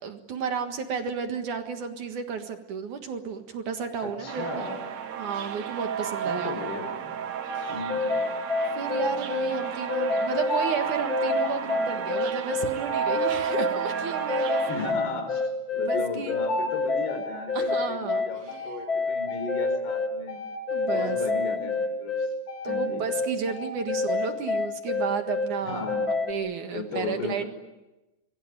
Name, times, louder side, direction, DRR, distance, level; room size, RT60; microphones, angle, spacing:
voice 1, 0.0-4.8 5.2-6.6 7.5-7.7 8.7-14.6 15.8-16.4 17.5-18.6 20.7-21.2 22.6-25.9 26.2-27.4, right 6 dB, 55° right, 6 dB, 2.5 m, -32 dB
voice 2, 4.0-4.8 6.2-7.1 7.7-8.0 14.7-20.4 20.9-22.3 22.6-23.0 25.6-26.1 26.7-27.5, left 3 dB, 60° left, 6 dB, 6.3 m, -35 dB
sound 1, 4.3-14.9, right 8 dB, 70° right, 1.6 m, -32 dB
sound 2, 7.5-26.3, left 3 dB, 30° left, 2.0 m, -28 dB
27.0 x 22.5 x 8.9 m, 1.0 s
omnidirectional pair, 5.2 m